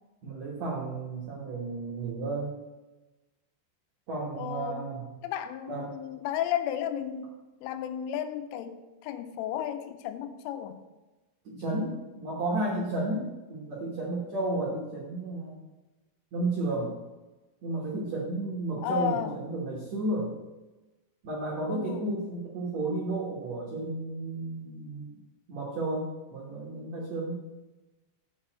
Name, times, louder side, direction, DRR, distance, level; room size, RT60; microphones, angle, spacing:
voice 1, 0.2-2.5 4.1-5.0 5.7-5.9 11.4-15.6 16.3-16.9 17.6-20.4 21.2-25.2 25.5-27.4, right 2 dB, 90° right, -4 dB, 1.5 m, -32 dB
voice 2, 4.4-4.9 5.2-7.4 7.6-10.8 18.8-19.4 21.7-22.1, left 10 dB, 85° left, 9 dB, 3.2 m, -33 dB
7.2 x 5.6 x 7.4 m, 1.1 s
omnidirectional pair, 5.6 m